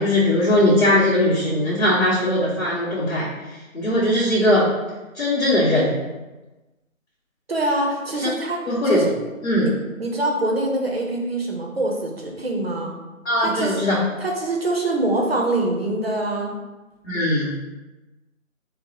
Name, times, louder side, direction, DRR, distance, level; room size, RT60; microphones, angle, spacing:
voice 1, 0.0-4.7 5.1-6.0 8.7-9.1 9.4-9.7 13.2-14.0 17.0-17.6, left 1 dB, 55° left, -9 dB, 1.0 m, -20 dB
voice 2, 7.5-9.2 9.6-9.7 10.0-13.0 13.4-13.8 14.2-16.6, right 2 dB, 45° right, 0 dB, 0.6 m, -24 dB
4.5 x 2.0 x 2.8 m, 1.1 s
figure-of-eight pair, 165°, 41 cm